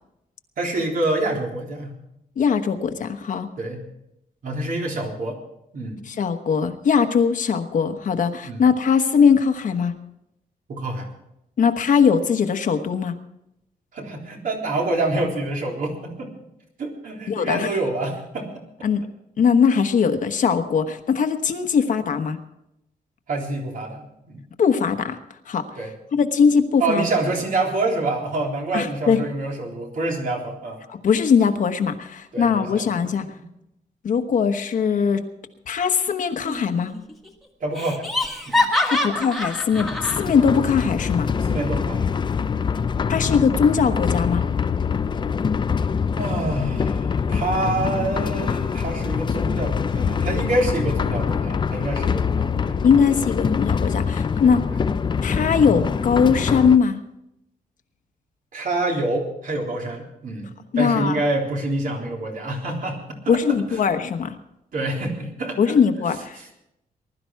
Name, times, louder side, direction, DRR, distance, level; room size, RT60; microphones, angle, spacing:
voice 1, 0.6-2.0 3.6-3.8 4.4-5.4 5.7-6.0 8.4-8.7 10.7-11.1 13.9-16.3 16.8-18.5 23.3-24.5 25.8-25.9 26.8-30.8 32.3-33.4 37.6-38.1 38.5-38.7 41.5-42.5 46.2-52.8 58.5-60.5 60.8-63.6 64.7-65.8 66.4-66.5, right 2 dB, 60° right, 0 dB, 3.7 m, -27 dB
voice 2, 2.4-3.5 6.1-9.9 11.6-13.1 17.3-17.7 18.8-19.1 19.4-22.4 24.6-25.2 25.5-25.7 26.1-27.0 28.7-29.2 30.9-33.3 34.0-35.3 35.7-36.9 38.9-41.3 43.1-44.4 52.8-54.6 55.2-57.0 60.7-61.2 63.3-64.4 65.6-66.5, left 6 dB, 55° left, 7 dB, 1.2 m, -20 dB
Laughter, 36.4-37.0 37.3-37.4 37.8-40.2, left 2 dB, ahead, 1.7 m, -25 dB
sound 1, 39.7-56.8, left 6 dB, 30° left, 0.4 m, -24 dB
20.5 x 12.0 x 4.7 m, 0.82 s
wide cardioid pair, 165°, 16 cm